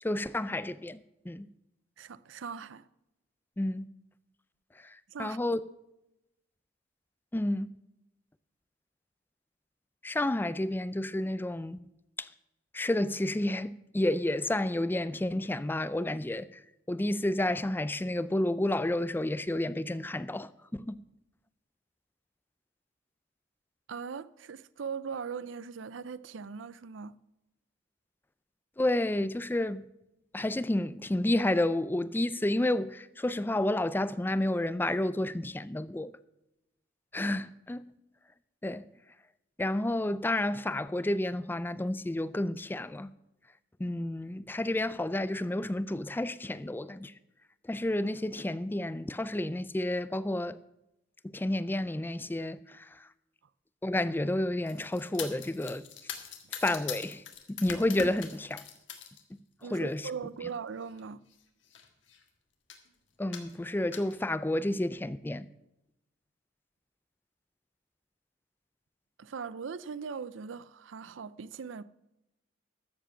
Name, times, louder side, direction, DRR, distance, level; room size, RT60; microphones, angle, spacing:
voice 1, 0.0-1.5 3.6-3.9 4.8-5.6 7.3-7.7 10.0-11.8 12.2-12.3 12.7-16.6 16.9-21.0 28.8-29.8 30.3-36.1 37.1-37.8 38.6-38.8 39.6-43.1 43.8-47.1 47.7-50.6 51.2-53.1 53.8-55.9 56.6-57.2 57.5-58.6 59.7-60.1 63.2-65.5, left 1 dB, 10° left, 0.4 m, -30 dB
voice 2, 2.0-2.9 5.1-5.4 23.9-27.1 59.6-61.2 69.2-71.8, right 6 dB, 85° right, 0.5 m, -40 dB
sound 1, 54.7-59.2 59.6-60.0 60.9-61.0 61.3-61.4 61.6-62.2 62.7-62.9 63.3-64.2, left 7 dB, 75° left, 1.7 m, -42 dB
13.5 x 7.6 x 5.8 m
head